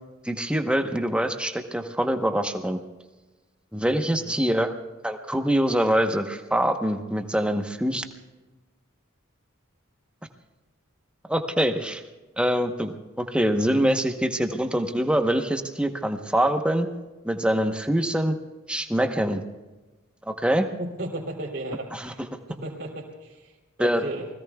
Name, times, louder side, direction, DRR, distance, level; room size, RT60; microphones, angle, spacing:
voice 1, 0.2-2.8 3.7-4.7 5.0-8.0 11.3-12.0 12.4-16.9 17.2-18.3 18.7-19.4 20.3-20.7 21.9-22.1 23.8-24.0, right 1 dB, 5° right, 5 dB, 1.0 m, -24 dB
voice 2, 4.1-4.4 20.8-22.2 22.5-24.3, right 1 dB, 50° right, -5 dB, 3.0 m, -35 dB
29.5 x 20.5 x 2.3 m, 1.2 s
head